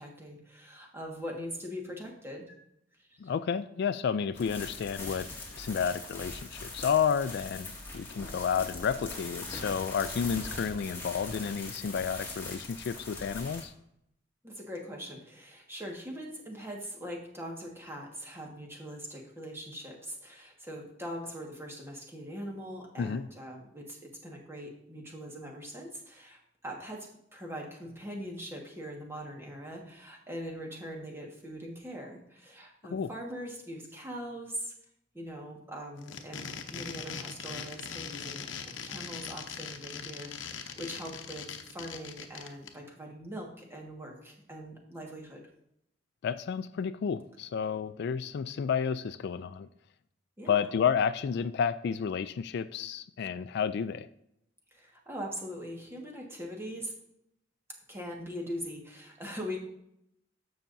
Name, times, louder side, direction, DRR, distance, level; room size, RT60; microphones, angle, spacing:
voice 1, 0.0-2.5 14.4-34.7 35.1-45.4 50.4-50.5 54.7-56.9 57.9-59.6, equal, 15° right, -1 dB, 1.6 m, -42 dB
voice 2, 3.2-13.7 23.0-23.3 32.9-33.1 46.2-49.7 50.5-54.1, left 7 dB, 60° left, 14 dB, 0.3 m, -31 dB
sound 1, 4.4-13.6, left 2 dB, 10° left, 2.0 m, -41 dB
sound 2, 36.0-42.7, left 6 dB, 85° left, 0.7 m, -41 dB
14.5 x 5.7 x 2.6 m, 0.76 s
head